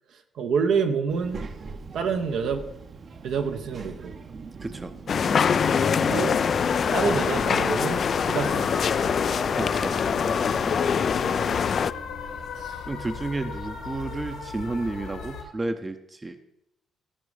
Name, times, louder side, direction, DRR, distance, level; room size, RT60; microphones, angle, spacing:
voice 1, 0.1-1.4 1.9-2.7 3.2-4.1 6.1-6.4 6.9-8.9 11.4-11.6 12.6-12.8, right 6 dB, 75° right, 6 dB, 0.8 m, -28 dB
Child speech kid speaking, 1.1-11.9, right 4 dB, 45° right, 0.8 m, -40 dB
voice 2, 4.6-4.9 9.6-10.0 12.9-16.4, right 2 dB, 20° right, 9 dB, 0.6 m, -31 dB
sound 1, 5.1-11.9, left 7 dB, 50° left, 0.3 m, -24 dB
sound 2, 6.7-15.4, left 5 dB, 80° left, 2.0 m, -36 dB
15.5 x 5.2 x 4.9 m, 0.84 s
cardioid pair, 90°, 0 cm